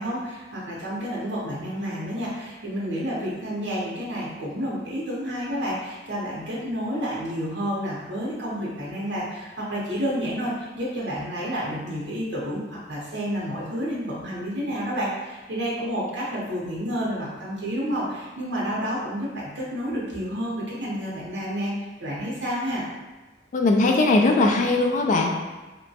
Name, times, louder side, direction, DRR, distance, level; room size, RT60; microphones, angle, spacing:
voice 1, 0.0-21.7 22.0-22.8, equal, 70° right, -6 dB, 0.7 m, -30 dB
voice 2, 23.5-25.3, left 2 dB, 45° left, 2 dB, 0.3 m, -19 dB
2.9 x 2.1 x 2.7 m, 1.2 s
head